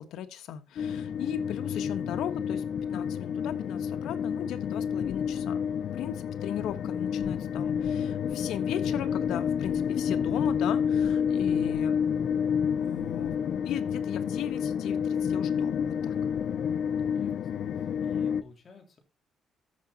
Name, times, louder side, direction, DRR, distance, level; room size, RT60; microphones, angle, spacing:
voice 1, 0.0-2.6 2.9-5.6 5.9-12.0 12.7-13.4 13.6-16.1, left 10 dB, 85° left, 9 dB, 1.3 m, -37 dB
sound 1, 0.8-18.4, left 7 dB, 60° left, 0.5 m, -29 dB
voice 2, 17.1-19.0, left 1 dB, 40° left, 3 dB, 3.5 m, -52 dB
14.0 x 5.9 x 4.1 m, 0.28 s
cardioid pair, 120°, 0 cm